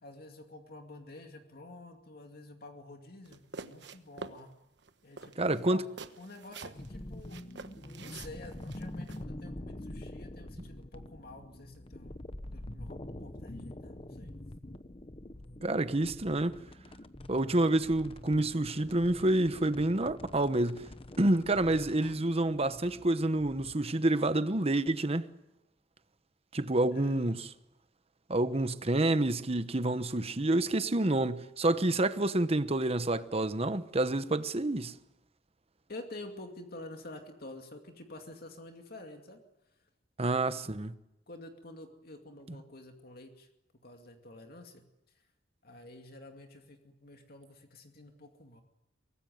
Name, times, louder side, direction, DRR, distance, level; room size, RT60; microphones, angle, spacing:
voice 1, 0.0-4.5 5.0-5.9 6.2-7.4 8.0-12.2 12.5-14.3 26.9-27.4 35.9-39.4 40.3-40.6 41.3-43.5 43.8-44.8 45.1-45.2 45.6-48.6, left 2 dB, 55° left, 2.4 m, -49 dB
sound 1, 3.3-4.4 4.8-4.9 5.2-6.9 7.3-9.2, right 4 dB, 65° right, 1.2 m, -46 dB
voice 2, 5.4-5.8 15.6-16.6 17.3-20.9 21.2-25.3 26.5-27.5 28.3-34.9 40.2-40.9, right 2 dB, 35° right, 1.1 m, -28 dB
sound 2, 6.7-23.7, left 1 dB, 30° left, 1.0 m, -46 dB
23.5 x 19.0 x 9.4 m
head